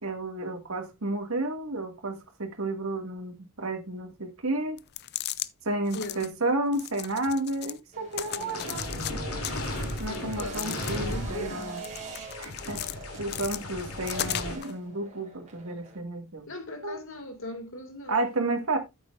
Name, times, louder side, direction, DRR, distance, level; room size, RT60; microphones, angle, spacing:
voice 1, 0.0-4.8 5.6-9.2 10.0-11.8 12.4-12.8 13.2-16.5 16.8-17.0 18.1-18.8, right 2 dB, 70° right, 2.1 m, -31 dB
sound 1, 4.8-5.5 5.9-6.3 6.7-7.8 8.1-9.1 9.4-11.2 11.6-13.0 13.3-14.7, left 13 dB, 50° left, 0.5 m, -36 dB
voice 2, 5.9-6.3 10.0-11.7 16.5-18.2, left 2 dB, 65° left, 2.3 m, -39 dB
sound 2, 7.9-16.0, right 2 dB, 35° right, 3.3 m, -42 dB
sound 3, 8.3-14.6, left 1 dB, 80° left, 2.9 m, -36 dB
13.5 x 7.7 x 2.5 m
head